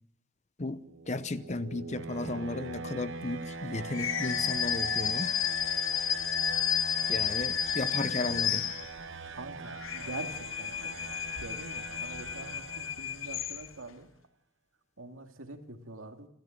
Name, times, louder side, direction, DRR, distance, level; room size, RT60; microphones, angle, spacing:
sound 1, 0.7-13.5, right 4 dB, 70° right, 1.1 m, -42 dB
voice 1, 1.1-5.3 7.1-8.7, left 2 dB, 35° left, 14 dB, 0.8 m, -34 dB
sound 2, 3.9-9.2 9.7-13.9, left 9 dB, 75° left, 0.9 m, -32 dB
voice 2, 9.3-11.2 11.4-14.1 15.0-16.3, right 2 dB, 85° right, 5 dB, 2.4 m, -44 dB
27.5 x 13.5 x 7.7 m, 0.73 s
head